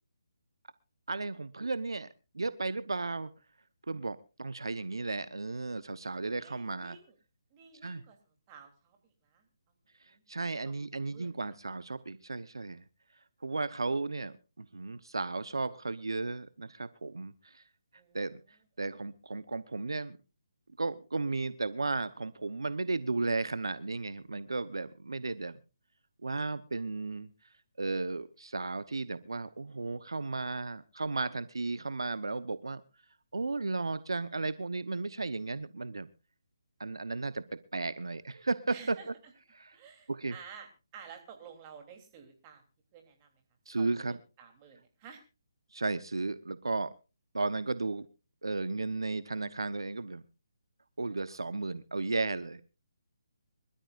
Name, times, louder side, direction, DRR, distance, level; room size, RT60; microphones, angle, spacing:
voice 1, 1.1-2.1 2.3-3.3 3.9-7.0 7.8-8.0 10.3-12.8 13.4-17.6 18.1-18.4 18.8-20.2 20.8-25.6 26.2-27.3 27.8-32.8 33.3-36.1 36.8-37.4 37.7-39.0 39.5-39.8 40.1-40.3 43.7-44.2 45.7-46.9 47.3-48.0 48.4-50.2 51.0-52.6, right 3 dB, 90° right, 15 dB, 0.9 m, -34 dB
voice 2, 6.4-7.1 7.5-9.4 10.1-10.2 10.6-10.7 11.1-11.5 17.9-18.2 38.7-39.1 39.7-42.6 42.9-43.3 43.8-45.2, right 7 dB, 25° right, 4 dB, 3.3 m, -52 dB
25.5 x 13.0 x 2.5 m, 0.30 s
hypercardioid pair, 155°, 2 cm